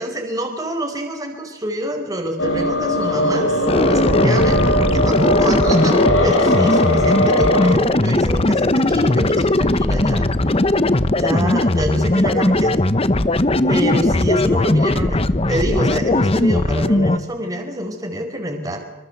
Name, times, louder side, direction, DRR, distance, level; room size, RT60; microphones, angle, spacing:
voice 1, 0.0-10.3 11.1-12.8 13.7-15.2 15.5-18.8, right 1 dB, 15° right, 3 dB, 4.8 m, -26 dB
sound 1, 2.4-7.8, left 1 dB, 80° left, 5.8 m, -19 dB
sound 2, 3.7-17.2, left 1 dB, 30° left, 1.0 m, -18 dB
26.0 x 24.0 x 8.1 m, 0.94 s
head